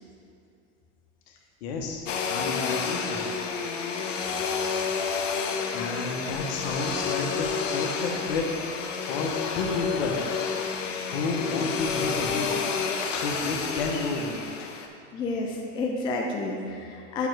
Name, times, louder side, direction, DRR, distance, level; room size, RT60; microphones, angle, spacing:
voice 1, 1.3-3.3 5.7-10.2 11.1-12.6 13.1-14.7, left 3 dB, 60° left, 2 dB, 1.1 m, -31 dB
Domestic sounds home sounds, 2.1-14.9, left 5 dB, 85° left, 0.8 m, -30 dB
voice 2, 15.1-17.3, left 3 dB, 15° left, 0 dB, 0.4 m, -30 dB
7.3 x 3.1 x 6.1 m, 2.5 s
supercardioid pair, 130°, 36 cm